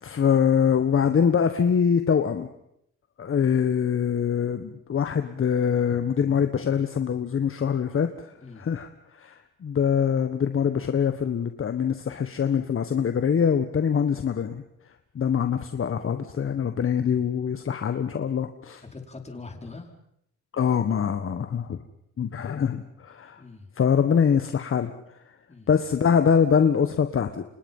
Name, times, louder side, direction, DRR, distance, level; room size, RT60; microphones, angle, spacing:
voice 1, 0.0-2.5 3.2-8.1 8.6-8.9 9.1-14.6 15.1-18.8 20.5-21.8 22.2-23.4 23.8-24.9 25.7-27.5, left 7 dB, 45° left, 8 dB, 1.6 m, -24 dB
voice 2, 18.8-19.9 23.4-23.7 25.5-25.7, left 3 dB, 20° left, 3 dB, 5.0 m, -42 dB
29.0 x 26.0 x 5.6 m, 0.76 s
cardioid pair, 90°, 30 cm